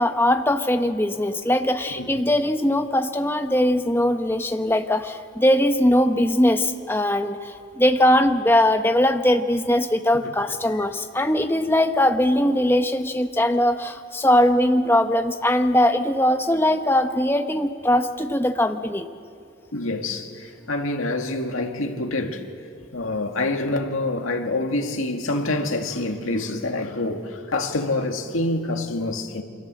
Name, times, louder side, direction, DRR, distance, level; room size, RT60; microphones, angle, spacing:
voice 1, 0.0-19.1, left 1 dB, 10° left, 1.0 m, -20 dB
voice 2, 19.7-22.4 22.9-29.4, left 2 dB, 90° left, 2.3 m, -26 dB
28.0 x 25.0 x 7.7 m
head